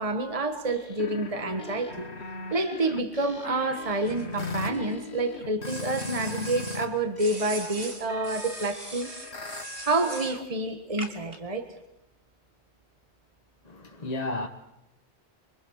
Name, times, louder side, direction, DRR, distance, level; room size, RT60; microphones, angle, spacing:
voice 1, 0.0-2.1 2.5-9.1 9.8-11.7, right 2 dB, 35° right, 1.5 m, -28 dB
sound 1, 0.7-6.9 7.2-10.4, left 3 dB, 80° left, 1.9 m, -39 dB
sound 2, 4.1-5.1 5.6-6.9 7.2-10.4 11.0-11.4, right 2 dB, 60° right, 2.2 m, -40 dB
voice 2, 13.6-14.5, left 2 dB, 40° left, 1.4 m, -32 dB
26.5 x 23.5 x 6.5 m
omnidirectional pair, 1.1 m